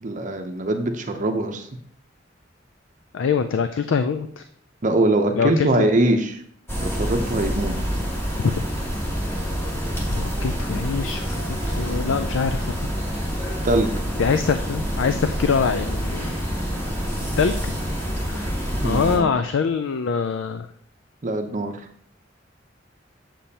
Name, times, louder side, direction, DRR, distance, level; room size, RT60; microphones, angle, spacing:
voice 1, 0.0-1.7 4.8-6.4 6.8-7.8 13.6-13.9 18.8-19.3 21.2-21.8, right 1 dB, 40° right, 6 dB, 0.7 m, -22 dB
voice 2, 3.1-4.4 5.4-5.9 8.4-8.5 10.1-12.9 14.2-16.4 17.4-17.7 18.3-18.5 18.8-20.7, left 5 dB, 85° left, 9 dB, 0.4 m, -24 dB
sound 1, 6.7-19.2, equal, 15° left, 1.5 m, -27 dB
7.5 x 7.0 x 2.8 m, 0.62 s
head